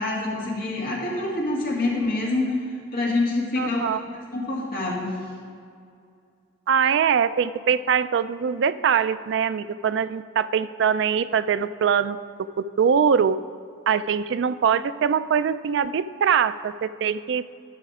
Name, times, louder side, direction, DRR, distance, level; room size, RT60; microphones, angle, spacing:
voice 1, 0.0-2.5 2.9-4.0 4.3-5.1, left 2 dB, 50° left, -4 dB, 2.2 m, -26 dB
voice 2, 3.6-4.0 6.7-12.2 12.6-13.4 13.9-17.5, right 7 dB, 60° right, 14 dB, 0.3 m, -22 dB
11.5 x 6.7 x 4.9 m, 2.3 s
head